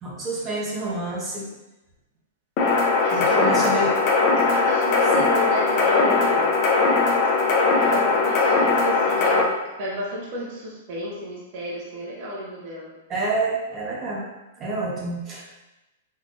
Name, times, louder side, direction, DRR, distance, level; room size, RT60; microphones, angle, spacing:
voice 1, 0.0-1.5 3.1-3.9 13.1-14.2 14.6-15.5, right 2 dB, 30° right, -5 dB, 1.1 m, -27 dB
sound 1, 2.6-9.4, left 4 dB, 45° left, 0.7 m, -20 dB
voice 2, 3.0-3.6 4.4-6.5 7.8-12.9, left 1 dB, 55° right, -5 dB, 1.0 m, -31 dB
3.7 x 2.9 x 2.6 m, 1.0 s
hypercardioid pair, 120°, 0 cm